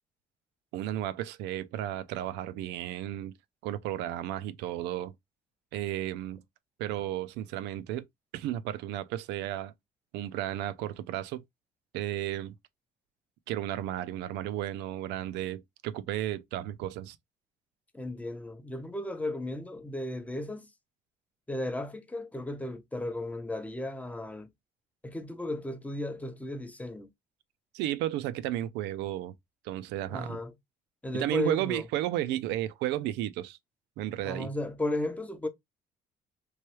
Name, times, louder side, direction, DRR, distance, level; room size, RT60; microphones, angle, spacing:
voice 1, 0.7-3.3 3.6-5.1 5.7-6.4 6.8-8.1 8.3-9.7 10.1-11.4 11.9-12.5 13.5-17.2 27.7-29.3 29.6-30.4 31.1-33.6 34.0-34.5, right 13 dB, 85° right, 0.4 m, -33 dB
voice 2, 17.9-20.7 21.5-24.5 25.0-27.1 30.1-30.5 31.0-31.8 34.2-35.5, left 1 dB, 10° left, 0.5 m, -35 dB
3.1 x 2.2 x 3.0 m
cardioid pair, 110°, 17 cm